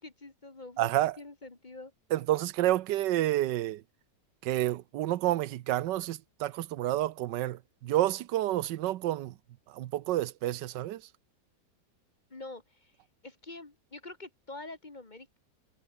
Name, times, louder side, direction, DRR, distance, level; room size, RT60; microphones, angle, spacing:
voice 1, 0.0-1.9 12.3-12.9 13.2-15.4, left 2 dB, 25° left, 1.7 m, -46 dB
voice 2, 0.8-1.1 2.1-3.8 4.4-9.3 9.7-11.0, right 14 dB, 90° right, 1.4 m, -29 dB
omnidirectional pair, 1.8 m